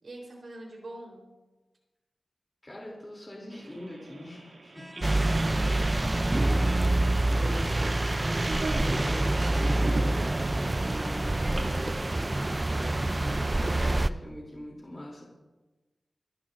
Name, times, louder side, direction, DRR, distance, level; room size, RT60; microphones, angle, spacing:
voice 1, 0.0-1.3 5.1-6.6 11.4-12.3, right 1 dB, 65° right, 0 dB, 3.6 m, -45 dB
voice 2, 2.6-5.0 7.3-7.9 8.3-10.0 10.8-11.6 12.7-15.3, left 1 dB, 20° left, -2 dB, 2.9 m, -42 dB
sound 1, 3.5-11.8, right 2 dB, 90° right, 2.2 m, -41 dB
sound 2, 4.7-9.3, equal, 10° right, 4.1 m, -48 dB
sound 3, 5.0-14.1, right 2 dB, 25° right, 0.4 m, -26 dB
26.5 x 12.0 x 2.5 m, 1.2 s
wide cardioid pair, 90°, 0 cm